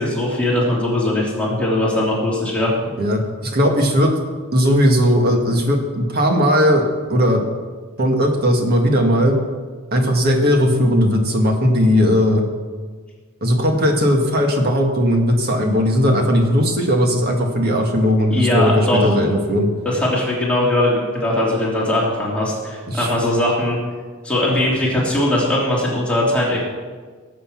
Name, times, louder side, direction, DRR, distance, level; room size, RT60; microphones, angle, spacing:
voice 1, 0.0-2.7 18.3-19.1 19.8-23.8 24.2-26.6, left 1 dB, 5° left, -5 dB, 3.1 m, -20 dB
voice 2, 3.0-4.1 4.5-6.8 7.1-7.4 8.0-9.4 9.9-12.4 13.4-19.7 22.9-23.1, equal, 50° right, 3 dB, 1.9 m, -17 dB
18.0 x 8.3 x 6.0 m, 1.5 s
head